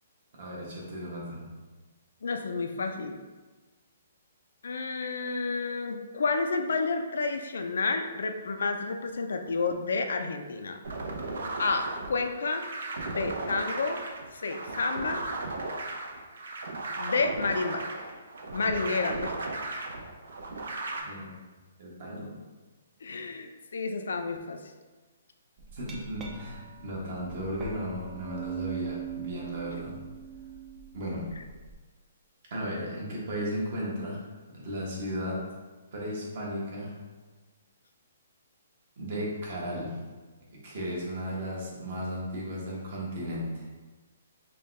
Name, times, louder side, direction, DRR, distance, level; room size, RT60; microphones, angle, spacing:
voice 1, 0.3-1.5 21.0-21.3 21.8-22.4 25.7-30.0 30.9-31.3 32.5-34.3 34.5-35.5 35.9-37.0 39.0-40.0 40.5-43.6, equal, 50° right, -4 dB, 1.3 m, -35 dB
voice 2, 2.2-3.2 4.6-10.8 11.6-12.6 13.0-14.0 14.3-15.2 17.0-17.9 18.5-19.5 23.0-24.6, left 4 dB, 80° left, 6 dB, 0.4 m, -30 dB
sound 1, 10.8-21.0, right 2 dB, 80° right, 0.6 m, -36 dB
Glass, 25.6-31.7, right 9 dB, 15° right, 0.4 m, -41 dB
5.2 x 2.3 x 3.2 m, 1.3 s
hypercardioid pair, 165°, 0 cm